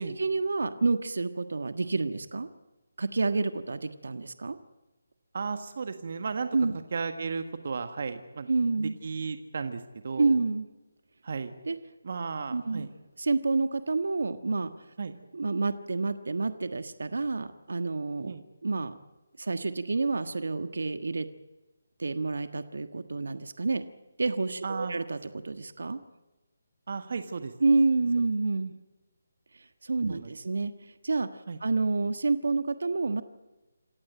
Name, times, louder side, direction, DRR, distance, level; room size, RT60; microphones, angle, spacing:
voice 1, 0.0-2.5 3.0-4.6 6.5-6.7 8.5-9.0 10.2-10.7 11.7-11.8 12.5-12.9 13.2-14.7 15.3-18.3 18.6-19.0 19.4-21.3 22.0-23.8 24.2-26.0 27.6-28.7 29.8-31.3 31.6-33.2, right 3 dB, 70° right, 9 dB, 1.4 m, -28 dB
voice 2, 5.3-6.5 6.9-8.5 8.8-10.4 11.2-11.5 12.0-12.9 15.0-15.2 18.2-18.4 24.6-24.9 26.9-27.5 30.1-30.3 31.5-31.6, right 5 dB, 55° right, 8 dB, 1.6 m, -34 dB
27.5 x 15.0 x 9.1 m, 1.1 s
figure-of-eight pair, 155°, 0 cm